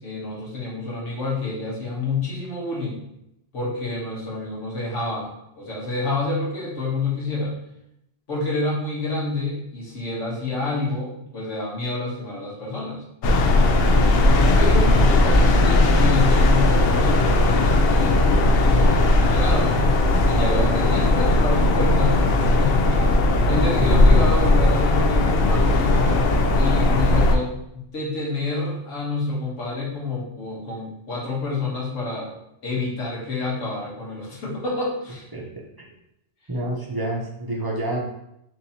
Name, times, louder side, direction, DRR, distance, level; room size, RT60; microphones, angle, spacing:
voice 1, 0.0-3.0 3.5-7.5 8.3-13.0 14.6-19.8 20.2-23.1 23.4-26.0 26.6-32.3 32.6-35.3, left 3 dB, 80° left, -4 dB, 1.6 m, -28 dB
sound 1, 13.2-27.4, left 2 dB, 60° left, 0.7 m, -17 dB
voice 2, 13.5-14.3 23.9-24.1 35.3-35.6 36.5-38.0, right 1 dB, 20° right, -3 dB, 0.7 m, -29 dB
6.1 x 2.7 x 2.8 m, 0.82 s
omnidirectional pair, 1.3 m